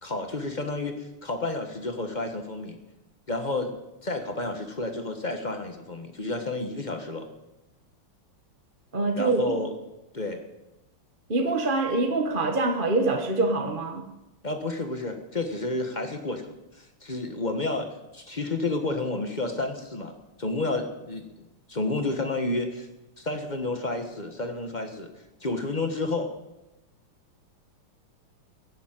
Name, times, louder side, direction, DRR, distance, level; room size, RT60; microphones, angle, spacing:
voice 1, 0.0-2.8 3.3-3.7 4.0-7.3 9.2-9.7 10.1-10.4 14.4-17.9 18.1-20.1 20.4-21.3 21.7-22.9 23.2-25.1 25.4-26.3, left 2 dB, 25° left, 5 dB, 1.2 m, -30 dB
voice 2, 8.9-9.5 11.3-14.1, right 3 dB, 30° right, 3 dB, 1.1 m, -25 dB
16.0 x 7.2 x 9.0 m, 0.98 s
omnidirectional pair, 2.4 m